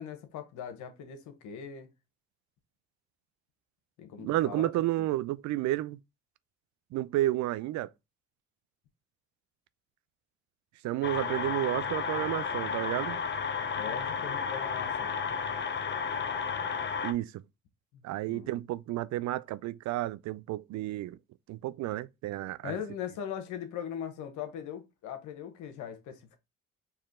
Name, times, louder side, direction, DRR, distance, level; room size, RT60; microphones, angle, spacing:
voice 1, 0.0-1.9 4.0-4.7 5.0-5.1 13.7-15.2 17.9-18.0 18.3-18.6 22.6-26.4, left 8 dB, 80° left, 1.0 m, -40 dB
voice 2, 4.2-6.0 6.9-7.9 10.8-13.2 17.0-17.4 18.0-21.2 21.5-22.8, right 15 dB, 70° right, 0.4 m, -31 dB
sound 1, 11.0-17.1, left 6 dB, 40° left, 0.7 m, -32 dB
4.7 x 2.9 x 3.6 m
supercardioid pair, 65°, 30 cm